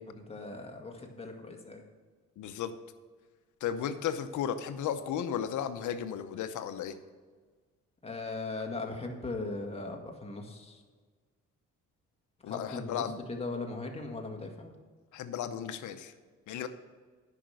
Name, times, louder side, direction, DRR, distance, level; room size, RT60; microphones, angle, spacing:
voice 1, 0.0-1.8 8.0-10.8 12.4-14.7, left 3 dB, 20° left, 2 dB, 1.8 m, -39 dB
voice 2, 2.4-2.7 3.6-6.9 12.4-13.2 15.1-16.1 16.5-16.7, left 9 dB, 75° left, 10 dB, 0.8 m, -34 dB
10.0 x 5.8 x 6.5 m, 1.5 s
cardioid pair, 90°, 30 cm